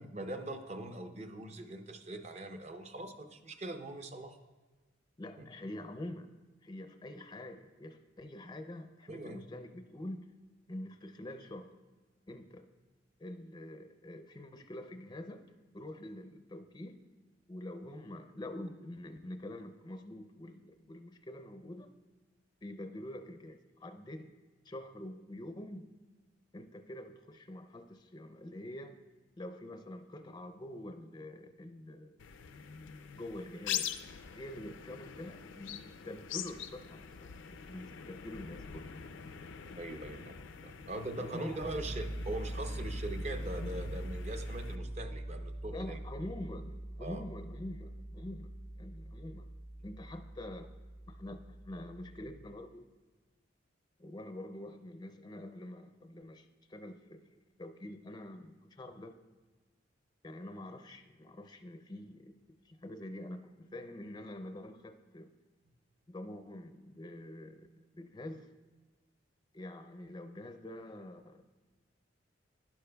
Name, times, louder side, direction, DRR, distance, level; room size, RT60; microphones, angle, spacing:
voice 1, 0.0-4.4 5.4-5.5 9.1-9.4 39.8-46.0 47.0-47.2, right 1 dB, 35° right, 6 dB, 0.7 m, -42 dB
voice 2, 5.2-10.3 10.7-11.7 12.3-12.7 13.2-15.4 15.7-17.0 17.5-21.9 22.6-24.3 24.6-25.9 26.5-29.0 29.4-32.1 33.2-33.9 34.3-37.3 37.7-38.9 41.2-41.6 45.7-48.5 48.8-49.5 49.8-50.7 51.1-52.8 54.0-57.2 57.6-59.1 60.2-65.3 66.1-68.5 69.5-71.4, left 1 dB, 20° left, 8 dB, 0.4 m, -46 dB
sound 1, 32.2-44.8, left 8 dB, 80° left, 0.4 m, -44 dB
Piano, 41.6-52.4, right 1 dB, 80° right, 3.4 m, -42 dB
11.5 x 11.0 x 2.3 m, 1.3 s
head